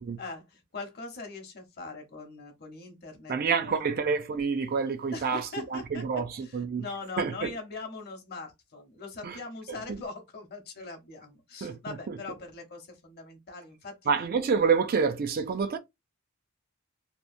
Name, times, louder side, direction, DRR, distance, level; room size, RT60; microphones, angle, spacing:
voice 1, 0.2-3.4 3.6-3.9 5.1-6.0 6.4-14.1, left 3 dB, 45° left, 0.8 m, -41 dB
voice 2, 3.3-6.8 7.2-7.5 9.2-9.4 9.7-10.0 11.6-12.2 14.1-15.8, right 5 dB, 45° right, 0.4 m, -28 dB
2.8 x 2.0 x 2.5 m
head